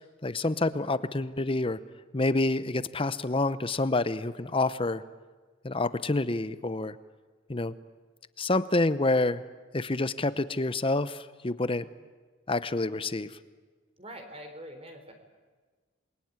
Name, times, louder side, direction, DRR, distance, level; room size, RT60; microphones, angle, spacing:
voice 1, 0.2-1.8 2.1-5.0 5.6-6.9 7.5-7.7 8.4-9.4 9.7-11.8 12.5-13.3, left 2 dB, 25° left, 15 dB, 0.8 m, -28 dB
voice 2, 14.0-15.1, equal, 30° right, 6 dB, 3.9 m, -45 dB
28.0 x 22.5 x 9.7 m, 1.4 s
head